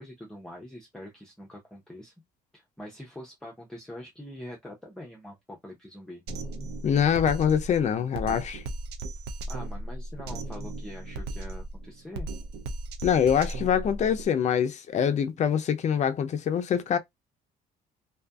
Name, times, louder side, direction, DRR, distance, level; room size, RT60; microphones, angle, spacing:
voice 1, 0.0-2.1 2.5-6.2 9.5-12.3, left 1 dB, 5° left, 0.7 m, -44 dB
Drum kit, 6.3-14.3, right 2 dB, 80° right, 0.5 m, -36 dB
voice 2, 6.8-8.6 13.0-17.0, left 8 dB, 45° left, 0.4 m, -24 dB
2.6 x 2.5 x 2.2 m
cardioid pair, 110°, 17 cm